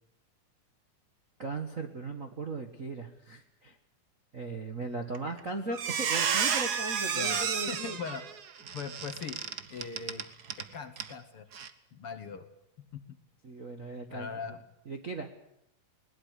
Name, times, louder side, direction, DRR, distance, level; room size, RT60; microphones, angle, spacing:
voice 1, 1.4-3.8 4.3-8.0 13.4-14.3 14.9-15.3, right 3 dB, 40° right, 4 dB, 1.1 m, -38 dB
Squeak, 5.1-5.4 5.7-10.7 11.0-11.1 11.5-11.7, right 7 dB, 65° right, 0.9 m, -31 dB
voice 2, 7.1-8.2 8.7-9.4 9.7-10.2 10.6-11.5 11.9-12.5 12.8-13.2 14.1-14.6, left 6 dB, 55° left, 9 dB, 1.7 m, -40 dB
21.0 x 20.0 x 8.2 m, 0.79 s
omnidirectional pair, 3.6 m